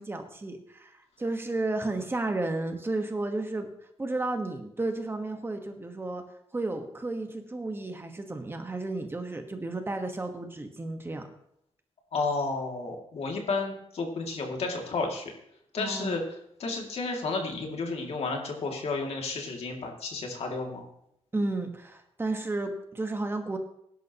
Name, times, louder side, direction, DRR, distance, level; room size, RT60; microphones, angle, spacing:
voice 1, 0.0-3.7 4.0-6.2 6.5-11.2 15.8-16.2 21.3-23.6, right 2 dB, 20° right, 5 dB, 1.4 m, -32 dB
voice 2, 12.1-15.3 15.7-16.2 16.6-20.8, left 3 dB, 70° left, 1 dB, 2.5 m, -32 dB
19.0 x 11.0 x 3.0 m, 0.76 s
wide cardioid pair, 125°, 11 cm